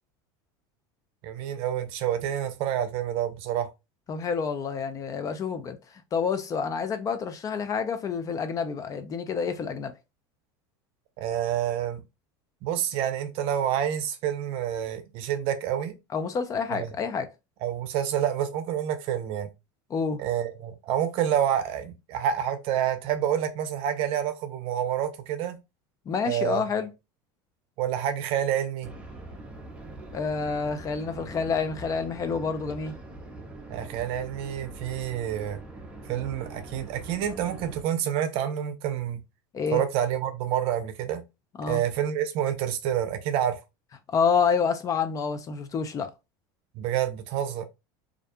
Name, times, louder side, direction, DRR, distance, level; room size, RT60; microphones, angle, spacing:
voice 1, 1.2-3.7 11.2-12.0 12.6-15.9 16.7-17.0 17.6-19.5 20.2-25.6 26.3-26.6 27.8-28.9 33.7-35.6 36.1-39.2 39.7-41.2 41.7-43.6 46.8-47.6, right 10 dB, 55° right, 0.6 m, -28 dB
voice 2, 4.1-5.8 6.1-9.9 16.1-17.3 19.9-20.2 26.1-26.9 30.1-32.9 39.5-39.8 41.6-41.8 44.1-46.1, left 5 dB, 30° left, 0.4 m, -28 dB
sound 1, 28.8-37.8, right 2 dB, 10° right, 0.7 m, -43 dB
2.5 x 2.1 x 2.6 m
supercardioid pair, 110°, 11 cm